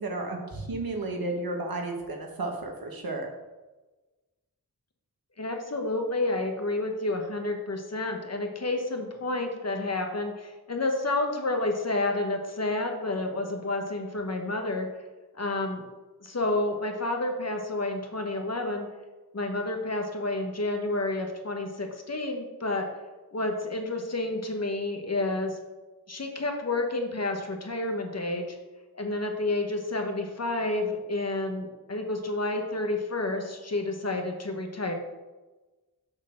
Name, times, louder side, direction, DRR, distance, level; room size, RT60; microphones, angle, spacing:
voice 1, 0.0-3.3, right 2 dB, 70° right, 1 dB, 1.4 m, -33 dB
voice 2, 5.4-14.9 15.3-15.9 16.2-18.9 19.3-22.9 23.3-25.6 26.1-28.6 28.9-34.9, left 2 dB, 45° left, 3 dB, 1.1 m, -30 dB
6.4 x 4.0 x 6.4 m, 1.2 s
wide cardioid pair, 70°, 37 cm